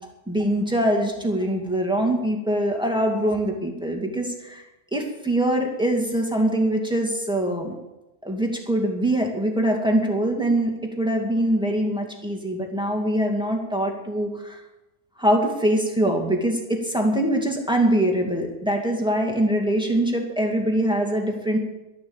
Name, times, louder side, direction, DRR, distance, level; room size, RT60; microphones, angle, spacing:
voice 1, 0.3-4.6 4.9-7.7 8.2-14.6 15.2-21.6, right 1 dB, 5° right, 1 dB, 2.2 m, -23 dB
12.0 x 11.5 x 7.1 m, 0.99 s
omnidirectional pair, 1.3 m